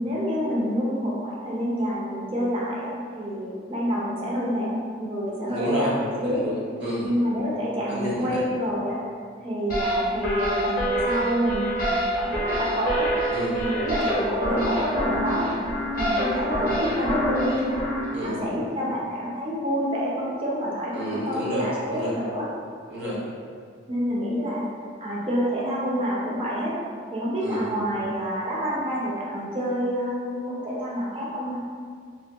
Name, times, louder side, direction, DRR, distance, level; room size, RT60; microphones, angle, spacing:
voice 1, 0.0-4.7 5.0-6.5 7.0-9.0 9.4-13.1 13.6-15.7 15.9-17.8 18.2-22.5 23.9-24.6 25.0-26.8 27.1-31.6, equal, 30° right, -5 dB, 0.4 m, -27 dB
voice 2, 5.5-5.9 6.2-7.1 7.9-8.4 13.3-13.6 18.1-18.4 20.9-22.1 22.9-23.2 27.4-27.6, equal, 65° right, -8 dB, 0.8 m, -29 dB
sound 1, 9.7-18.1, equal, 50° left, 0.6 m, -26 dB
2.6 x 2.2 x 2.2 m, 2.1 s
head